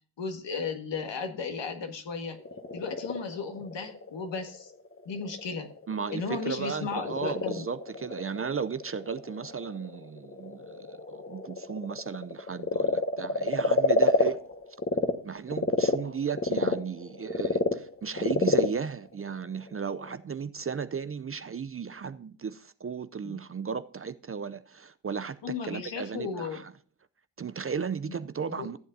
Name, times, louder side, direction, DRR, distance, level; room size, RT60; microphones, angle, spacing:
voice 1, 0.2-2.4 2.7-4.7 5.1-5.7 6.1-7.7 23.2-23.4 25.4-26.6 28.1-28.2 28.5-28.7, left 5 dB, 65° left, 1.8 m, -35 dB
Frog, 2.2-15.1 15.5-20.1, left 3 dB, 30° left, 1.4 m, -29 dB
voice 2, 5.9-14.4 15.2-26.7 27.4-28.8, right 6 dB, 30° right, 0.5 m, -35 dB
15.0 x 7.7 x 2.7 m
cardioid pair, 55°, 46 cm